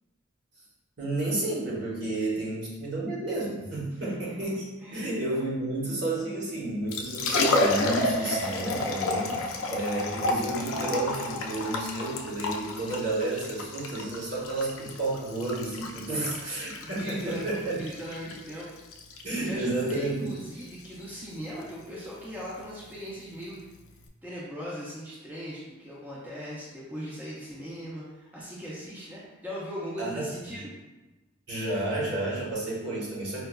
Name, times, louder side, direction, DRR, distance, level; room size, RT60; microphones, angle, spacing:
voice 1, 1.0-4.6 4.9-17.8 19.2-20.3 30.0-30.5 31.5-33.5, right 2 dB, 55° right, -6 dB, 1.0 m, -31 dB
voice 2, 4.0-4.3 4.8-5.2 16.0-16.3 16.8-18.7 19.4-23.7 24.2-30.7, equal, 10° right, -8 dB, 0.4 m, -39 dB
Liquid, 6.7-24.1, left 2 dB, 80° left, 0.4 m, -32 dB
4.5 x 2.2 x 2.2 m, 1.1 s
head